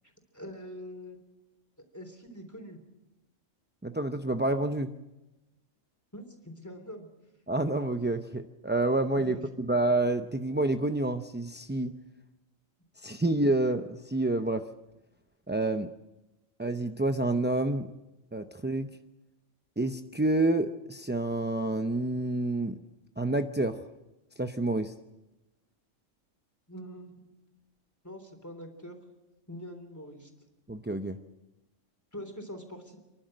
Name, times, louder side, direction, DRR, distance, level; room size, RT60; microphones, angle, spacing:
voice 1, 0.3-1.2 1.9-2.8 6.1-7.1 9.3-9.4 9.7-9.8 26.7-27.2 28.0-29.0 29.5-30.3 32.1-33.0, equal, 15° left, 4 dB, 3.4 m, -44 dB
voice 2, 3.8-4.9 7.5-9.3 9.7-11.9 13.0-14.6 15.5-15.9 16.6-17.9 18.3-18.9 19.8-22.8 23.2-23.8 24.4-24.9 30.7-31.2, right 2 dB, 15° right, 7 dB, 0.3 m, -28 dB
30.0 x 11.5 x 7.7 m, 1.0 s
omnidirectional pair, 1.3 m